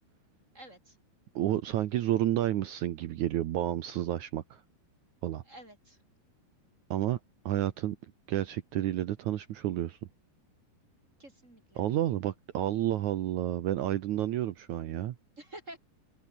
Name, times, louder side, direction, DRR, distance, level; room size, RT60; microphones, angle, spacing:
voice 1, 0.5-1.0 5.4-6.0 11.2-11.8 15.4-15.8, right 1 dB, 20° right, 3.4 m, -49 dB
voice 2, 1.3-4.4 5.2-5.4 6.9-7.2 7.4-8.0 8.3-10.0 11.8-15.1, right 13 dB, 90° right, 1.6 m, -30 dB
open air
omnidirectional pair, 4.9 m